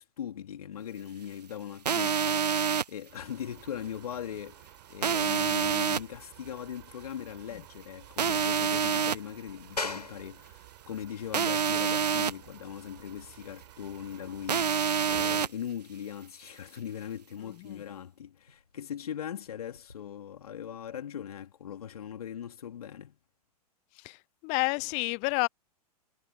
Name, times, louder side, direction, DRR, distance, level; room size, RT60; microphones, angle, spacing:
voice 1, 0.0-23.2, left 9 dB, 65° left, 3.0 m, -40 dB
sound 1, 1.9-2.8 5.0-6.0 8.2-9.2 11.3-12.3 14.5-15.5, right 7 dB, 90° right, 0.4 m, -27 dB
sound 2, 3.1-15.4, right 18 dB, 50° right, 5.1 m, -54 dB
sound 3, 9.8-20.0, left 3 dB, 90° left, 7.2 m, -45 dB
voice 2, 24.4-25.5, left 31 dB, 35° left, 0.7 m, -29 dB
figure-of-eight pair, 105°, 20 cm